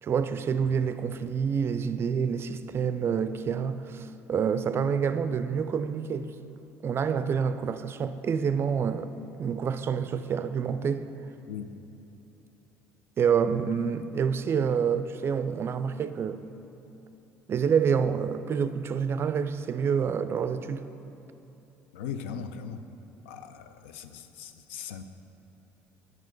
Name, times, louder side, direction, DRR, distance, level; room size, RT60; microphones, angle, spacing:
voice 1, 0.0-6.3 6.8-9.1 9.4-11.1 13.2-16.5 17.5-20.9, right 7 dB, 40° right, 0.4 m, -27 dB
voice 2, 21.9-22.8 23.3-25.0, left 7 dB, 80° left, 0.4 m, -39 dB
7.4 x 5.4 x 4.6 m
hypercardioid pair, 65°, 6 cm